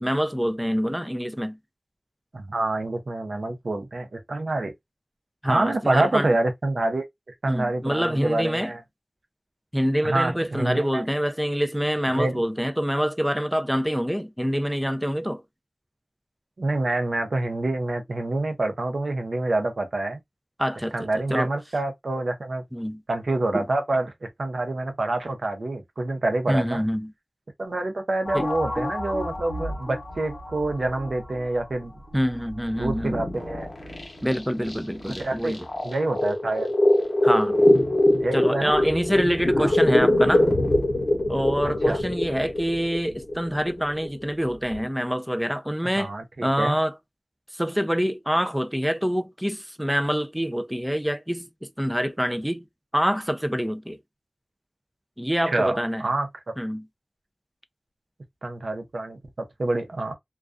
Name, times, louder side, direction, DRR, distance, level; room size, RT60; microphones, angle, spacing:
voice 1, 0.0-1.6 5.4-6.4 7.5-8.7 9.7-15.4 20.6-21.5 22.7-23.0 23.5-23.6 26.5-27.1 28.3-28.5 32.1-33.2 34.2-35.7 37.2-37.6 38.3-40.5 41.3-46.1 46.4-46.9 47.5-52.7 52.9-54.0 55.2-56.0 56.6-56.8, equal, 5° right, 0.3 m, -26 dB
voice 2, 2.3-4.7 5.5-7.1 7.4-8.8 10.0-11.0 12.2-12.4 16.6-20.2 20.9-22.6 23.1-26.8 27.6-31.9 32.8-33.7 35.2-35.6 35.8-36.7 38.2-38.7 39.6-39.7 41.9-42.0 46.0-46.8 55.5-56.3 58.4-60.1, right 2 dB, 90° right, 0.6 m, -27 dB
sound 1, 28.3-31.7 32.1-44.8, left 1 dB, 70° left, 0.7 m, -24 dB
2.3 x 2.2 x 2.4 m
wide cardioid pair, 55°, 0 cm